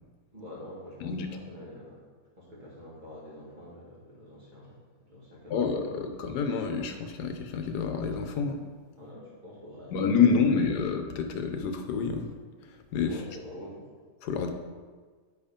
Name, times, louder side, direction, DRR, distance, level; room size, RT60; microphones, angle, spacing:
voice 1, 0.3-2.0 2.4-4.8 5.1-5.9 9.0-10.6 13.0-13.9, left 1 dB, 30° right, -5 dB, 2.3 m, -46 dB
voice 2, 5.5-8.6 9.9-12.3 12.9-13.2 14.2-14.5, left 5 dB, 80° left, 6 dB, 1.3 m, -28 dB
8.8 x 4.7 x 5.1 m, 1.5 s
omnidirectional pair, 1.7 m